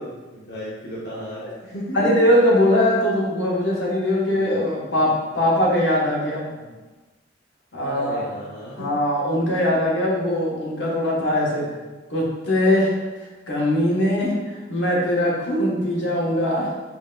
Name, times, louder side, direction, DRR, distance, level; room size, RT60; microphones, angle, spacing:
voice 1, 0.0-2.0 4.3-4.9 6.5-6.8 7.8-8.9 9.5-9.6, equal, 60° left, -8 dB, 0.8 m, -36 dB
voice 2, 1.9-6.4 7.7-8.2 8.7-11.6 12.1-12.9 13.5-14.4 14.7-16.7, left 1 dB, 80° left, -4 dB, 1.0 m, -21 dB
5.4 x 2.8 x 2.2 m, 1.2 s
head